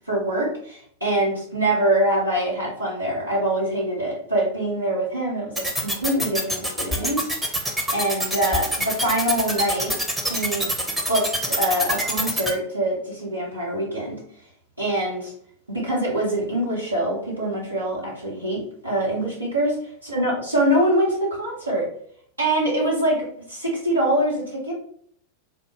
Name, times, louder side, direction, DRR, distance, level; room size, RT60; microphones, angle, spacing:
voice 1, 0.0-9.9 10.2-10.7 11.1-14.2 14.8-15.3 15.7-21.9 22.4-24.7, right 1 dB, 85° right, -5 dB, 1.3 m, -24 dB
sound 1, 5.5-12.5, equal, 5° right, 0.7 m, -24 dB
3.8 x 2.2 x 3.2 m, 0.62 s
figure-of-eight pair, 90°, 0 cm